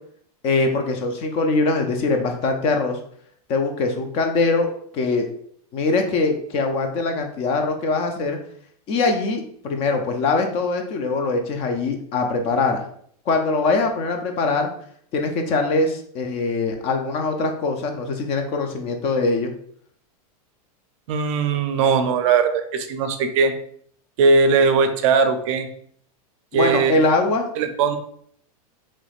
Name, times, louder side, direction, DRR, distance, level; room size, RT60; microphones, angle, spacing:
voice 1, 0.4-3.0 3.5-4.7 4.9-5.3 5.7-8.4 8.9-12.8 13.3-14.7 15.1-19.5 26.5-27.5, left 3 dB, 30° left, 5 dB, 0.4 m, -22 dB
voice 2, 21.1-23.5 24.2-25.7 26.5-26.9 27.6-28.0, right 4 dB, 55° right, 8 dB, 0.4 m, -19 dB
3.1 x 3.0 x 2.4 m, 0.64 s
supercardioid pair, 150°, 19 cm